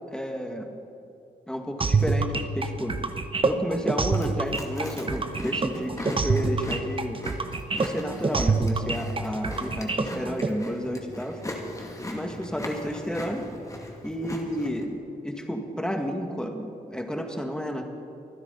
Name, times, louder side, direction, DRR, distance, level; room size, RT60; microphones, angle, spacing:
voice 1, 0.1-0.8 1.5-3.0 3.4-7.2 7.7-11.4 12.1-13.5 14.0-15.0 15.2-17.8, equal, 5° left, 3 dB, 1.9 m, -31 dB
sound 1, 1.8-10.5, right 4 dB, 35° right, 1.0 m, -26 dB
Chewing mastication, 4.0-14.8, left 1 dB, 20° left, 2.3 m, -39 dB
25.5 x 10.0 x 4.1 m, 2.7 s
cardioid pair, 70°, 16 cm